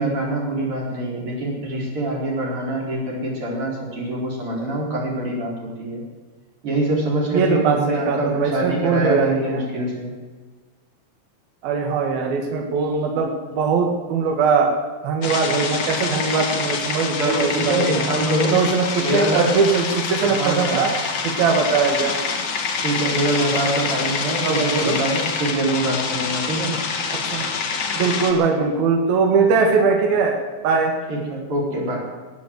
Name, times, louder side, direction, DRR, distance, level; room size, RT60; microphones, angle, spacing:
voice 1, 0.0-6.0 6.6-10.1 17.2-18.6 19.0-19.6 20.2-20.8 22.8-26.7 31.1-32.0, right 1 dB, 35° right, -2 dB, 4.7 m, -24 dB
voice 2, 7.3-9.6 11.6-14.7 15.0-18.0 18.5-20.9 21.2-22.2 24.4-25.0 27.3-27.5 28.0-30.4 30.6-30.9, right 5 dB, 80° right, 2 dB, 3.5 m, -20 dB
sound 1, 15.2-28.3, left 5 dB, 55° left, 2.5 m, -26 dB
20.5 x 8.4 x 7.9 m, 1.4 s
omnidirectional pair, 4.2 m